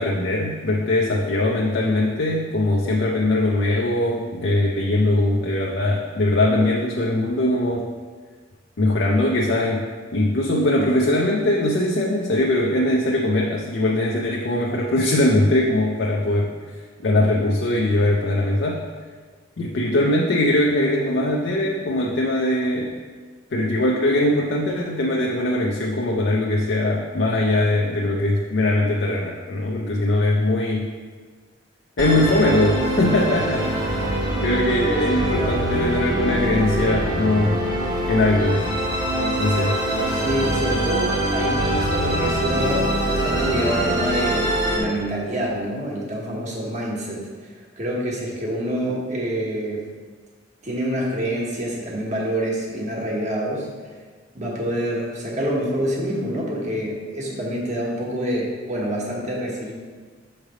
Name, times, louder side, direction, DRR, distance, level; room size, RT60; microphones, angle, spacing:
voice 1, 0.0-7.9 8.8-9.8 10.1-16.5 17.0-18.8 19.6-23.0 23.5-30.9 32.0-34.0 34.4-37.6 38.1-38.6 39.4-39.8, left 1 dB, 60° left, -2 dB, 0.6 m, -21 dB
Musical instrument, 32.0-44.8, right 1 dB, 20° right, 1.1 m, -23 dB
voice 2, 34.7-35.6 40.2-47.2 47.8-49.8 50.6-53.7 54.3-59.7, right 1 dB, 40° right, -3 dB, 1.3 m, -26 dB
6.5 x 3.3 x 4.8 m, 1.5 s
head